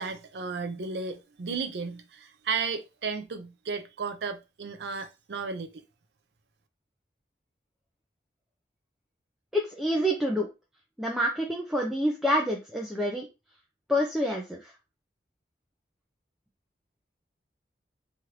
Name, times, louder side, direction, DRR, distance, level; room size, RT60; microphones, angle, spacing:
voice 1, 0.0-5.7, right 5 dB, 70° right, 0.5 m, -34 dB
voice 2, 9.5-10.5 11.0-13.3 13.9-14.7, equal, ahead, 0.4 m, -27 dB
3.2 x 2.5 x 2.9 m
head